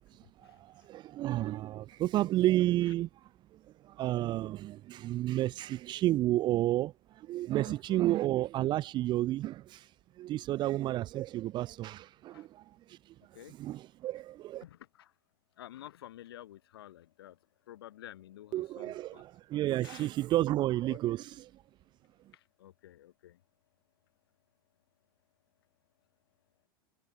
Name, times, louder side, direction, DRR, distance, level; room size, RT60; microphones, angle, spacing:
voice 1, 0.1-9.9 10.2-14.6 18.5-21.6, right 15 dB, 40° right, 0.7 m, -32 dB
voice 2, 7.6-8.0 12.3-12.5 13.3-13.5 14.6-15.1 15.6-17.4 17.7-19.2 19.8-20.1 20.9-21.0 22.6-23.4, left 13 dB, 85° left, 5.5 m, -50 dB
supercardioid pair, 120°, 12 cm